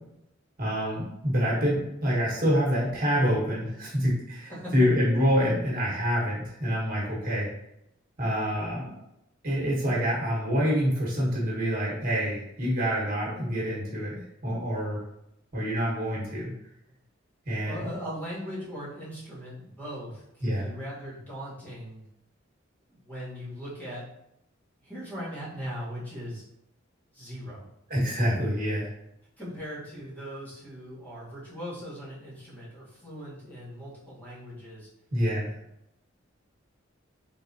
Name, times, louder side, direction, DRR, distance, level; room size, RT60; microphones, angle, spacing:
voice 1, 0.6-7.5 8.2-9.0 9.4-15.0 15.5-16.5 17.5-17.9 20.4-20.7 27.9-28.9 35.1-35.5, equal, 50° right, -5 dB, 1.5 m, -26 dB
voice 2, 17.6-22.1 22.9-24.1 24.8-26.4 27.1-27.7 29.4-34.9, equal, 10° left, -9 dB, 1.4 m, -39 dB
3.9 x 3.7 x 2.8 m, 0.82 s
head